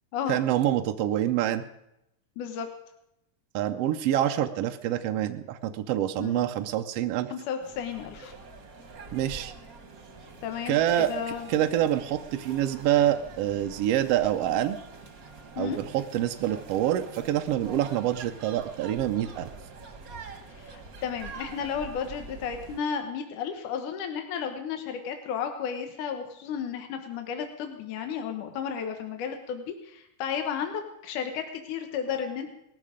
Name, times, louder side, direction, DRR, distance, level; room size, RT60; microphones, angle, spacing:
voice 1, 0.3-1.6 3.5-7.3 9.1-9.5 10.7-11.1 11.5-14.8 15.6-19.5, right 12 dB, 75° right, 6 dB, 1.5 m, -26 dB
voice 2, 2.4-2.7 6.2-6.4 7.3-8.3 10.4-11.5 15.6-15.8 20.5-32.5, left 7 dB, 80° left, 6 dB, 2.7 m, -33 dB
sound 1, 7.6-22.8, right 4 dB, 40° right, 1.4 m, -45 dB
19.0 x 14.0 x 5.1 m, 0.83 s
omnidirectional pair, 3.6 m